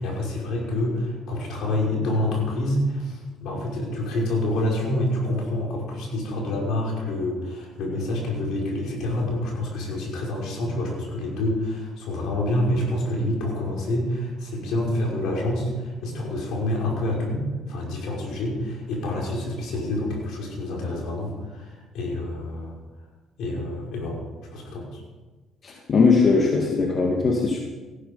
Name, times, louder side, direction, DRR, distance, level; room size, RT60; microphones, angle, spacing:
voice 1, 0.0-22.7 23.4-24.2 24.5-25.0, left 1 dB, 75° left, -2 dB, 5.7 m, -27 dB
voice 2, 25.6-27.6, left 4 dB, 45° left, 0 dB, 2.0 m, -20 dB
15.0 x 12.5 x 5.5 m, 1.3 s
cardioid pair, 90°, 0 cm